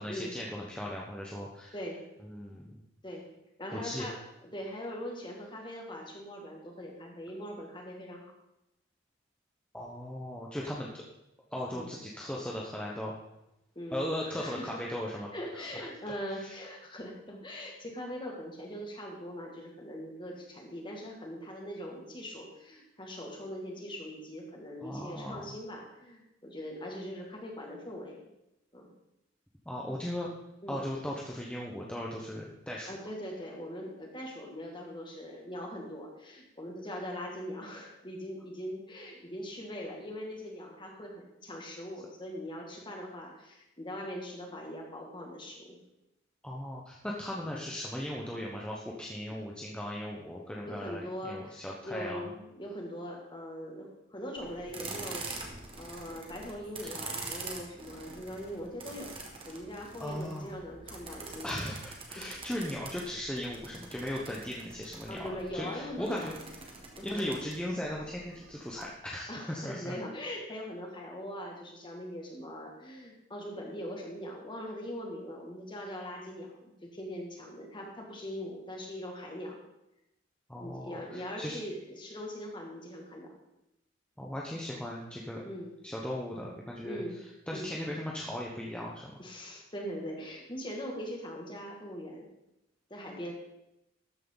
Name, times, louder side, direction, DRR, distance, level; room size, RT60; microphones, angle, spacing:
voice 1, 0.0-1.7 2.2-2.7 3.7-4.1 9.7-11.0 11.5-13.1 13.9-15.9 16.4-16.5 24.8-25.6 29.7-30.3 30.7-32.9 46.4-52.3 60.0-60.5 61.4-66.3 67.0-70.0 80.5-81.6 84.2-85.4 85.8-87.0 87.5-89.2, left 1 dB, 5° left, -3 dB, 1.0 m, -37 dB
voice 2, 1.7-2.0 3.0-3.3 3.6-4.2 4.5-8.3 11.7-11.9 13.8-14.8 15.3-28.2 28.7-28.9 30.6-30.8 32.9-45.8 50.7-59.1 59.5-61.6 62.2-62.4 65.1-66.3 67.0-67.4 69.3-79.6 80.6-83.3 85.4-85.7 86.8-87.2 87.5-87.7 89.2-92.3 92.9-93.3, equal, 25° left, 0 dB, 2.2 m, -41 dB
sound 1, 54.4-68.8, right 3 dB, 25° right, 1.8 m, -45 dB
13.0 x 9.1 x 4.0 m, 0.90 s
head